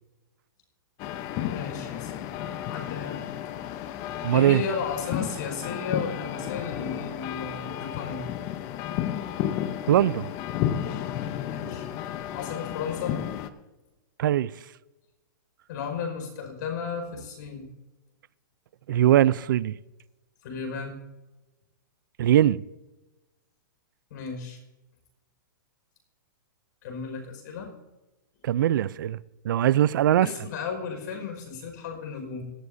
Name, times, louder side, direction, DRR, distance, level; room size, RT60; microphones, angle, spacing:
sound 1, 1.0-13.5, left 11 dB, 30° left, 0.8 m, -32 dB
voice 1, 1.4-2.1 2.4-3.2 4.3-8.3 11.5-11.9 12.3-13.2 15.7-17.7 20.4-21.0 24.1-24.6 26.8-27.7 30.2-32.4, left 6 dB, 55° left, 5.1 m, -34 dB
voice 2, 4.2-4.6 9.9-10.3 14.2-14.5 18.9-19.7 22.2-22.6 28.4-29.2 29.4-30.3, right 12 dB, 70° right, 0.5 m, -21 dB
18.0 x 12.5 x 2.7 m
hypercardioid pair, 150°, 11 cm